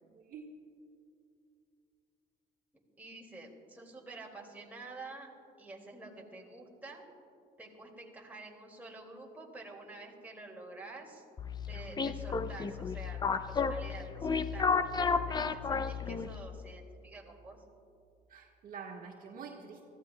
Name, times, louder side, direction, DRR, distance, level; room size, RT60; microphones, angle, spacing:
voice 1, 0.0-0.5 18.3-19.9, right 6 dB, 55° right, 0 dB, 1.5 m, -47 dB
voice 2, 3.0-5.3 5.6-7.0 7.6-11.2 11.7-13.2 13.5-17.6, right 2 dB, 10° right, -1 dB, 2.2 m, -49 dB
sound 1, 11.4-16.5, left 5 dB, 25° left, 0.5 m, -32 dB
23.5 x 14.5 x 2.2 m, 2.5 s
cardioid pair, 110°, 17 cm